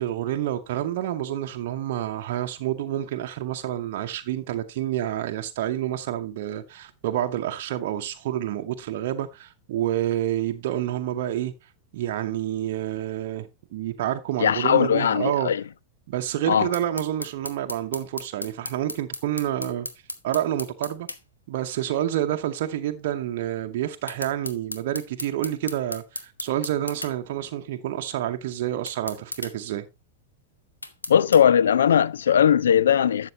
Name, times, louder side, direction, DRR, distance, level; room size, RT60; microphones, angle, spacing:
voice 1, 0.0-11.5 11.9-15.5 16.1-19.9 20.2-21.1 21.5-29.8, right 12 dB, 50° right, 0.8 m, -28 dB
voice 2, 14.4-15.6 16.5-16.7 31.1-33.3, left 8 dB, 65° left, 0.4 m, -19 dB
sound 1, 16.7-21.2 24.1-27.1 28.9-29.5 30.8-31.4, left 2 dB, 80° left, 0.9 m, -35 dB
12.0 x 7.5 x 2.8 m
figure-of-eight pair, 90°, 0 cm